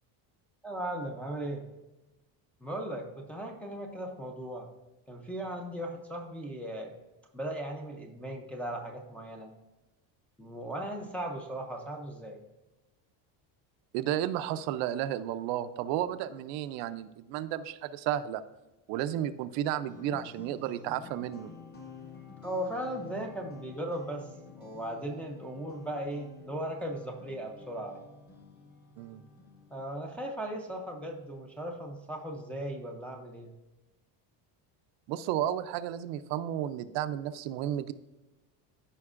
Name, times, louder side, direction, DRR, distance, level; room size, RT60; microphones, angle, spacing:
voice 1, 0.6-1.6 2.6-4.7 5.1-6.9 7.3-9.5 10.4-12.4 22.4-24.3 24.5-28.0 29.7-33.5, right 1 dB, 5° left, -1 dB, 0.4 m, -37 dB
voice 2, 13.9-18.4 18.9-21.5 29.0-29.2 35.1-37.9, right 11 dB, 75° right, 11 dB, 0.6 m, -32 dB
sound 1, 19.9-30.3, left 5 dB, 25° left, 0.9 m, -51 dB
14.0 x 5.3 x 2.5 m, 1.1 s
cardioid pair, 180°, 44 cm